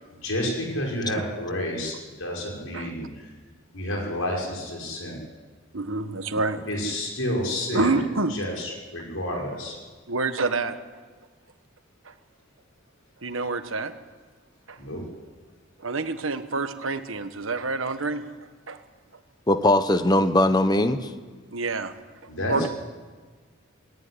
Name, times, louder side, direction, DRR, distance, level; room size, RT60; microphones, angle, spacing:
voice 1, 0.2-3.1 3.7-5.2 6.7-7.9 8.3-9.8 14.8-15.0 22.3-22.7, left 1 dB, 90° left, -1 dB, 5.7 m, -30 dB
voice 2, 5.7-6.6 7.7-8.4 10.1-10.8 12.0-12.1 13.2-13.9 14.7-14.8 15.8-18.2 18.7-18.8 21.5-21.9 22.5-22.7, right 3 dB, 80° right, 9 dB, 1.4 m, -27 dB
voice 3, 19.5-21.1 22.6-22.7, left 1 dB, 20° left, 10 dB, 1.1 m, -20 dB
18.5 x 18.0 x 9.8 m, 1.4 s
head